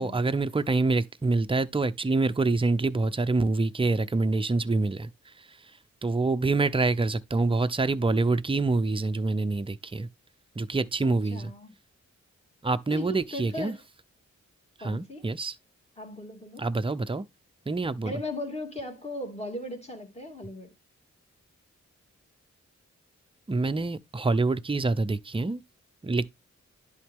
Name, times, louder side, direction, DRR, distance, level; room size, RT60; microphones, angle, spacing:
voice 1, 0.0-5.1 6.0-10.1 10.6-11.5 12.6-13.7 14.8-15.5 16.6-17.2 17.7-18.1 23.5-25.6 26.0-26.3, right 3 dB, 20° right, 0.6 m, -26 dB
voice 2, 11.0-11.7 12.9-13.8 14.8-15.3 16.0-16.7 18.0-20.7, left 1 dB, 20° left, 2.6 m, -37 dB
10.5 x 4.1 x 3.6 m
cardioid pair, 70°, 30 cm